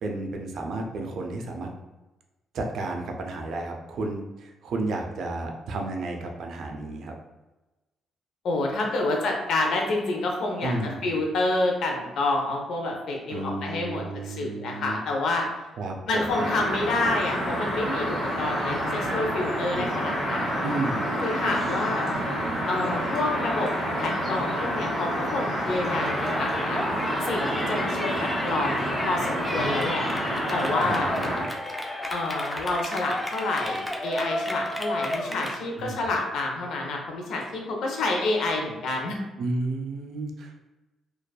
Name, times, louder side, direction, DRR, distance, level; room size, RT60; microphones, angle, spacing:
voice 1, 0.0-1.7 2.5-7.1 10.6-11.2 13.3-15.0 15.8-16.5 20.6-21.2 30.8-31.5 35.8-36.1 39.4-40.7, right 2 dB, 70° right, 2 dB, 0.4 m, -32 dB
voice 2, 8.4-10.7 11.0-15.5 16.1-20.6 21.2-22.0 22.7-23.7 24.0-26.9 27.2-30.1 30.5-31.1 32.1-39.2, left 2 dB, 75° left, 1 dB, 0.5 m, -28 dB
sound 1, 16.3-31.4, equal, 25° right, 1.3 m, -28 dB
Yell, 25.9-35.6, left 1 dB, 10° left, 0.4 m, -32 dB
2.5 x 2.2 x 2.2 m, 1.1 s
cardioid pair, 90°, 0 cm